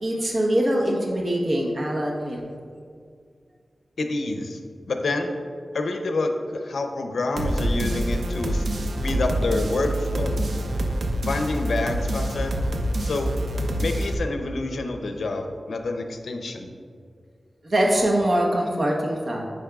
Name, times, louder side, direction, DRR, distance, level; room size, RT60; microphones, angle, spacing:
voice 1, 0.0-2.4 17.6-19.4, right 1 dB, 55° right, 0 dB, 1.0 m, -23 dB
voice 2, 4.0-4.6 4.9-5.3 5.7-8.6 9.0-10.4 11.2-12.5 13.0-13.3 13.8-16.7, left 2 dB, 80° left, 5 dB, 0.5 m, -27 dB
sound 1, 7.4-14.1, right 1 dB, 90° right, 0.6 m, -26 dB
8.7 x 5.2 x 2.3 m, 2.2 s
wide cardioid pair, 75°, 0 cm